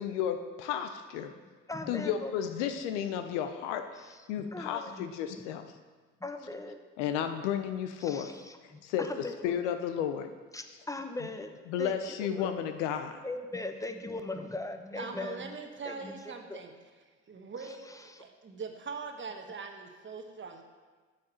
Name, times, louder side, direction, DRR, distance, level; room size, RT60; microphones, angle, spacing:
voice 1, 0.0-1.3 1.9-5.7 7.0-8.3 8.8-9.1 9.4-10.3 11.7-13.1, left 9 dB, 80° left, 8 dB, 0.7 m, -33 dB
voice 2, 1.7-2.3 4.0-5.1 6.2-6.8 8.0-9.6 10.5-11.5 11.8-12.8 13.2-15.6 15.8-16.6 17.6-18.2, left 2 dB, 10° left, 7 dB, 0.8 m, -40 dB
voice 3, 15.0-16.7 17.3-20.6, right 4 dB, 35° right, 4 dB, 1.1 m, -42 dB
8.5 x 6.6 x 4.3 m, 1.4 s
hypercardioid pair, 55°, 35 cm